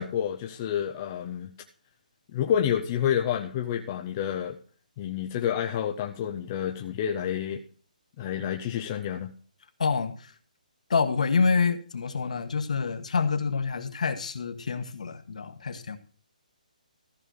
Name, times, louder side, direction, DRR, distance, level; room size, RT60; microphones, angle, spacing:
voice 1, 0.0-1.5 2.3-4.6 5.0-7.6 8.2-9.3, left 9 dB, 15° left, 4 dB, 0.4 m, -29 dB
voice 2, 9.8-10.3 10.9-16.0, left 5 dB, 55° left, 8 dB, 1.3 m, -27 dB
14.0 x 5.3 x 6.3 m, 0.43 s
hypercardioid pair, 175°, 5 cm